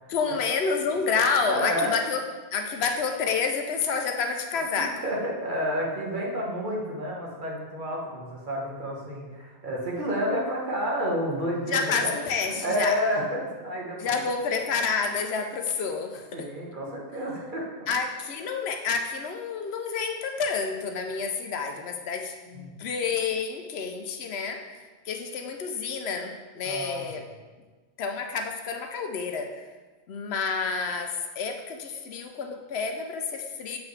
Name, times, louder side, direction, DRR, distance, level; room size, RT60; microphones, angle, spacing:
voice 1, 0.1-2.2 2.5-5.0 11.7-13.0 14.0-16.5 17.9-24.6 25.0-27.3 28.0-29.7 30.1-33.8, left 5 dB, 75° left, 4 dB, 0.9 m, -29 dB
voice 2, 1.5-1.9 4.7-12.1 12.4-14.2 16.3-17.6 22.5-22.8 26.6-27.1, equal, 50° right, -3 dB, 1.3 m, -30 dB
7.0 x 4.6 x 3.2 m, 1.3 s
omnidirectional pair, 1.1 m